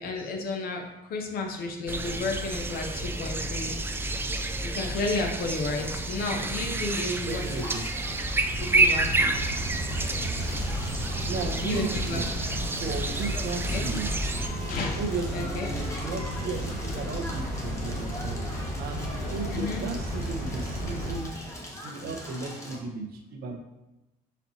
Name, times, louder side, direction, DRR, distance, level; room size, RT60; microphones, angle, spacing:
voice 1, 0.0-3.7 4.6-7.7 8.6-9.5 10.5-10.7 11.6-12.3 13.7-13.8 14.7-15.0 15.3-15.7 19.5-19.8, left 3 dB, 65° left, 3 dB, 0.7 m, -32 dB
sound 1, 1.9-14.5, right 2 dB, 15° right, 0.3 m, -29 dB
Crackle, 7.3-22.8, left 1 dB, 15° left, 1.0 m, -42 dB
voice 2, 7.3-7.8 11.3-12.3 12.8-14.2 15.0-21.3 21.7-23.6, right 4 dB, 65° right, 2 dB, 0.8 m, -35 dB
sound 2, 8.0-21.2, equal, 45° left, 1.4 m, -34 dB
4.2 x 4.2 x 2.8 m, 0.97 s
cardioid pair, 110°, 17 cm